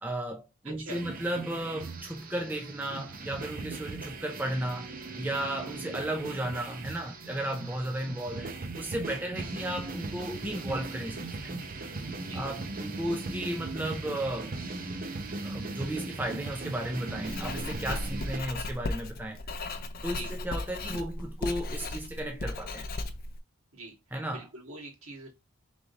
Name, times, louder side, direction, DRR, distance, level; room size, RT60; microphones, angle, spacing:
voice 1, 0.0-4.9 5.2-11.5 12.3-14.5 15.4-19.4 20.0-22.9 24.1-24.5, right 1 dB, 10° right, 0.4 m, -34 dB
voice 2, 0.6-1.0 12.2-12.5 20.1-20.3 23.7-23.9 24.3-25.3, right 2 dB, 70° right, 1.9 m, -44 dB
sound 1, 0.9-18.4, right 3 dB, 40° right, 0.7 m, -39 dB
Writing, 17.3-23.4, left 2 dB, 40° left, 0.5 m, -36 dB
3.7 x 3.2 x 3.9 m
head